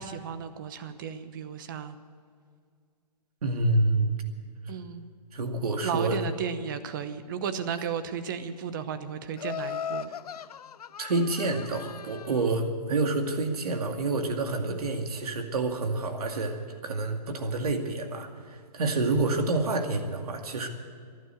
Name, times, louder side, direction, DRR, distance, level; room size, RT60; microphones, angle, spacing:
voice 1, 0.0-2.0 4.7-5.1 5.8-10.1 14.7-14.8, right 7 dB, 30° right, 11 dB, 0.9 m, -34 dB
voice 2, 3.4-4.2 5.3-6.2 11.0-20.7, right 2 dB, 60° right, 5 dB, 2.3 m, -28 dB
Laughter, 9.4-12.6, left 8 dB, 65° left, 0.7 m, -38 dB
14.0 x 11.5 x 9.0 m, 2.1 s
hypercardioid pair, 160°, 21 cm